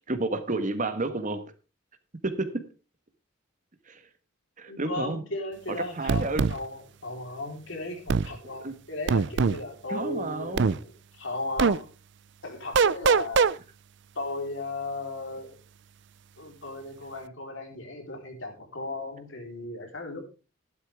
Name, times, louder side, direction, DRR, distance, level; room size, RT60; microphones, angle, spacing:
voice 1, 0.1-1.4 2.2-2.7 3.9-4.0 4.6-5.2 5.8-6.5 8.6-8.7 9.9-10.7, right 2 dB, 40° right, 1.3 m, -30 dB
voice 2, 4.7-11.9 12.4-13.5 14.2-15.6 16.4-20.2, left 2 dB, 70° left, 4.0 m, -36 dB
sound 1, 6.1-6.6 8.1-8.3 9.1-9.6 10.6-10.8 11.6-11.8 12.7-13.5, right 5 dB, 60° right, 0.5 m, -22 dB
13.5 x 11.5 x 3.5 m
head